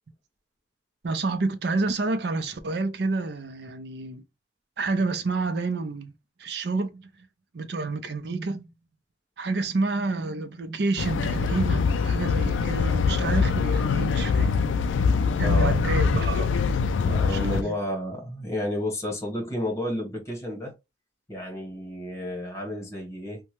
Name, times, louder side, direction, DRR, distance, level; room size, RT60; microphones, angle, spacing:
voice 1, 1.0-4.2 4.8-6.1 6.4-7.1 7.5-8.7 9.4-14.5 15.4-16.7 17.3-17.7, right 3 dB, 60° right, 0.5 m, -29 dB
sound 1, 11.0-17.6, left 5 dB, 85° left, 0.3 m, -23 dB
voice 2, 15.4-15.8 17.0-20.7 21.3-23.4, left 1 dB, 15° left, 1.1 m, -31 dB
2.8 x 2.2 x 2.9 m
head